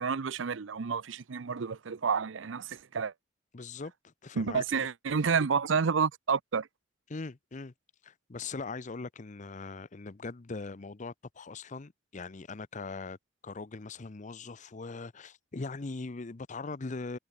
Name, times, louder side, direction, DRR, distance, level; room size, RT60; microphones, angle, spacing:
voice 1, 0.0-3.1 4.4-6.7, right 5 dB, 80° right, 0.6 m, -30 dB
voice 2, 3.5-4.6 7.1-7.7 8.0-13.2 13.4-17.2, left 3 dB, 40° left, 0.7 m, -40 dB
head